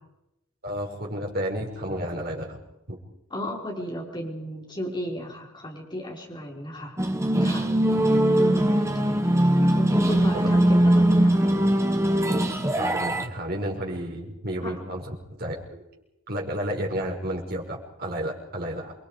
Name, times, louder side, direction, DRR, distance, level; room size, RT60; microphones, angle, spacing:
voice 1, 0.6-2.6 2.9-3.0 7.9-8.2 10.3-10.5 12.8-15.8 16.3-18.9, equal, 45° right, 0 dB, 5.5 m, -32 dB
voice 2, 3.3-7.0 7.4-7.7 8.3-9.2 9.7-11.6 14.6-14.7, equal, 20° left, -1 dB, 4.9 m, -34 dB
sound 1, 7.0-13.3, right 1 dB, 15° right, 1.4 m, -21 dB
28.0 x 23.0 x 5.1 m, 0.87 s
head